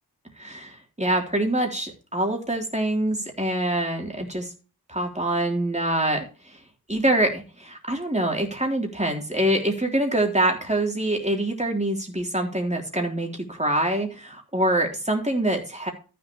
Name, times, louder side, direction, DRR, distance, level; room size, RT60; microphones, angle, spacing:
voice 1, 0.4-4.5 4.9-6.6 6.9-15.9, right 1 dB, 15° right, 1 dB, 3.6 m, -25 dB
14.0 x 7.1 x 3.2 m, 0.35 s
wide cardioid pair, 50°, 40 cm